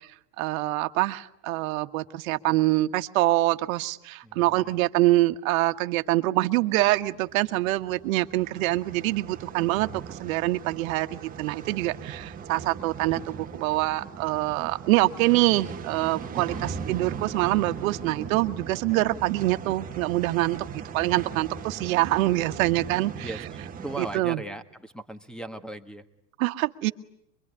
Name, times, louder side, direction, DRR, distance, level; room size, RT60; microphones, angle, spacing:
voice 1, 0.4-23.3 24.0-24.4 26.4-26.9, right 18 dB, 60° right, 9 dB, 1.5 m, -25 dB
voice 2, 4.2-4.8 16.2-16.7 18.9-19.0 23.2-26.0, right 1 dB, ahead, 10 dB, 1.5 m, -39 dB
sound 1, 6.7-24.2, right 6 dB, 20° right, 1.4 m, -39 dB
25.0 x 23.5 x 9.9 m, 0.74 s
supercardioid pair, 135°, 46 cm